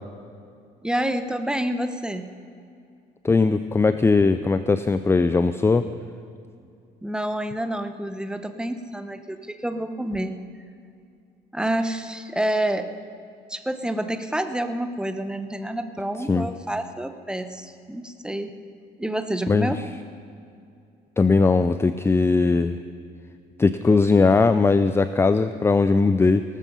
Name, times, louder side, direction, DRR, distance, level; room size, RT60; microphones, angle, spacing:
voice 1, 0.8-2.3 7.0-10.4 11.5-12.9 13.5-18.5 19.0-19.8, right 1 dB, 5° right, 9 dB, 1.0 m, -28 dB
voice 2, 3.2-5.8 16.3-16.5 19.5-19.7 21.2-22.8 23.6-26.4, left 4 dB, 15° left, 11 dB, 0.4 m, -19 dB
18.0 x 13.5 x 5.4 m, 2.5 s
cardioid pair, 110°, 17 cm